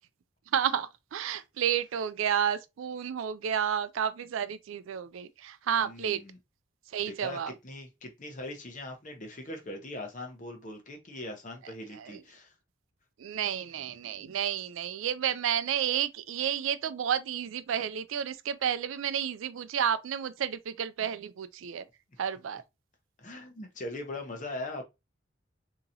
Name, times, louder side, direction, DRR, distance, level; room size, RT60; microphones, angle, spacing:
voice 1, 0.5-6.2 6.9-7.5 11.9-12.2 13.2-21.9 22.2-22.6, right 8 dB, 75° right, 0.4 m, -31 dB
voice 2, 5.8-6.4 7.0-7.4 7.6-12.5 23.2-24.8, left 2 dB, 40° left, 0.8 m, -40 dB
3.9 x 2.9 x 2.7 m
head